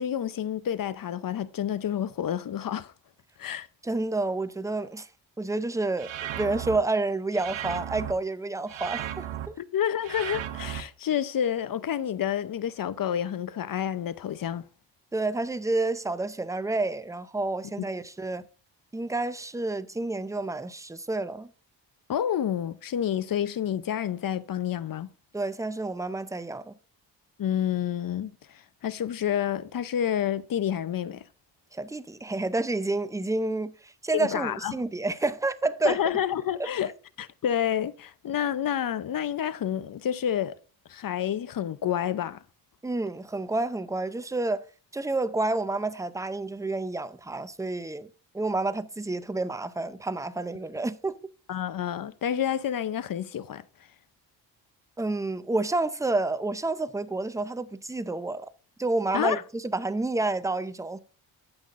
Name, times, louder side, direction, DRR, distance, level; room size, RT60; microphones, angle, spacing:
voice 1, 0.0-2.9 3.4-3.7 9.6-14.6 17.8-17.9 22.1-25.1 27.4-28.4 28.8-31.2 34.1-34.8 35.8-36.9 37.2-40.6 40.9-42.4 51.5-53.6 59.1-59.4, left 9 dB, 50° left, 0.7 m, -29 dB
voice 2, 3.8-5.1 5.4-9.5 15.1-18.5 18.9-21.5 25.3-26.7 31.7-36.0 36.6-36.7 42.8-44.6 44.9-48.1 48.3-51.2 55.0-58.5 58.8-61.0, right 2 dB, 5° right, 0.6 m, -29 dB
sound 1, 6.0-6.8 7.3-8.1 8.7-9.5 10.0-10.8, right 11 dB, 80° right, 1.1 m, -35 dB
15.0 x 5.8 x 2.5 m
cardioid pair, 90°, 44 cm